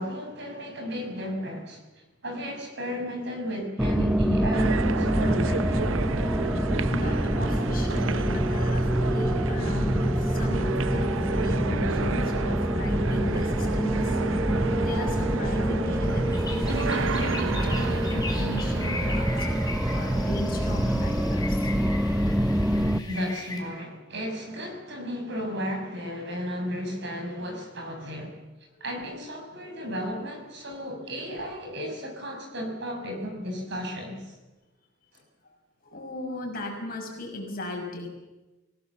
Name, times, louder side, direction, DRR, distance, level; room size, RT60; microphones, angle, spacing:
voice 1, 0.0-1.8 2.2-5.9 22.2-22.3 23.1-28.3 28.8-34.3, equal, 65° right, 3 dB, 6.2 m, -33 dB
sound 1, 3.8-23.0, equal, 5° right, 0.7 m, -26 dB
sound 2, 4.5-21.1, right 5 dB, 85° right, 0.7 m, -33 dB
voice 2, 6.8-14.2 14.8-19.5 19.9-21.7 28.7-28.8 35.8-38.1, left 1 dB, 50° left, 2 dB, 5.9 m, -37 dB
sound 3, 16.3-23.6, left 3 dB, 20° left, 4.1 m, -39 dB
27.5 x 17.0 x 7.3 m, 1.1 s
head